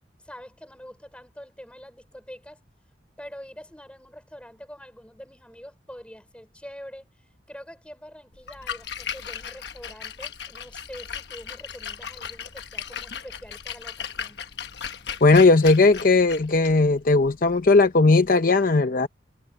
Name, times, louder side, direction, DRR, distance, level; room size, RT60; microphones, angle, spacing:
voice 1, 0.2-2.6 3.2-14.4, equal, 5° left, 4.1 m, -45 dB
Splash splatter, 8.4-18.3, left 7 dB, 65° left, 1.2 m, -37 dB
voice 2, 15.2-19.1, left 3 dB, 50° left, 0.7 m, -17 dB
head